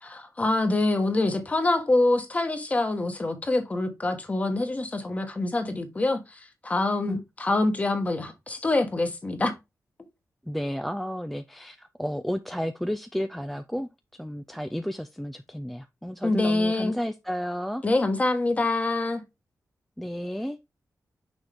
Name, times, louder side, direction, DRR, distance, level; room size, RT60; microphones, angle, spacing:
voice 1, 0.0-9.5 16.2-16.9 17.8-19.2, left 2 dB, 25° left, 1.3 m, -25 dB
voice 2, 10.4-13.9 14.2-17.8 20.0-20.6, equal, 5° left, 0.4 m, -32 dB
6.3 x 4.4 x 3.4 m
wide cardioid pair, 145°, 6 cm